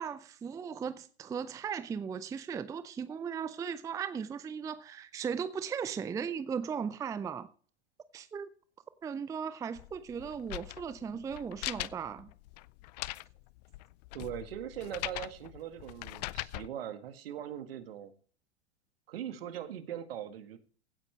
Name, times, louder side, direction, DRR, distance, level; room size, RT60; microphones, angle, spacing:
voice 1, 0.0-7.5 8.1-8.5 9.0-12.3, right 7 dB, 10° right, 0.5 m, -37 dB
sound 1, 9.7-16.7, left 19 dB, 40° left, 0.4 m, -41 dB
voice 2, 14.1-18.1 19.1-20.6, right 10 dB, 60° right, 1.8 m, -41 dB
16.0 x 9.0 x 3.3 m
figure-of-eight pair, 90°, 33 cm